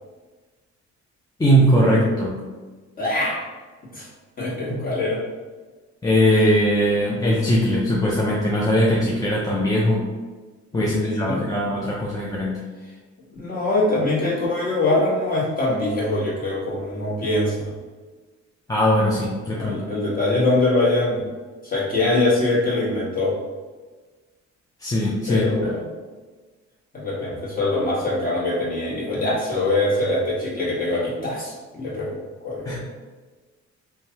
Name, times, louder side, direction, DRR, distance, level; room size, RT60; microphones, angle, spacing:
voice 1, 1.4-2.4 4.7-4.8 6.0-10.0 10.7-12.6 18.7-19.8 24.8-25.5 32.7-32.8, equal, 10° left, -5 dB, 0.5 m, -20 dB
voice 2, 3.0-3.4 3.9-4.1 4.4-5.2 10.7-11.4 13.3-17.7 19.5-21.2 21.6-23.4 25.3-25.8 26.9-32.2 32.4-32.8, left 2 dB, 30° left, -7 dB, 1.4 m, -23 dB
3.1 x 2.3 x 2.8 m, 1.3 s
cardioid pair, 90°, 30 cm